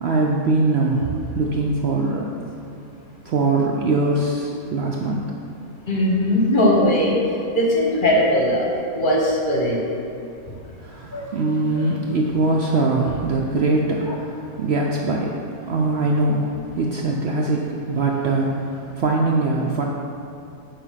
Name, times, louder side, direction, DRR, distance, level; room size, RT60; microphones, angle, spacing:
voice 1, 0.0-2.3 3.3-5.2 10.8-19.9, right 2 dB, 60° right, -1 dB, 0.7 m, -22 dB
voice 2, 5.9-7.2 7.5-8.7 8.9-9.8 11.1-11.2 14.1-14.2, left 1 dB, 40° left, -3 dB, 1.0 m, -19 dB
9.2 x 3.4 x 5.6 m, 2.6 s
omnidirectional pair, 1.5 m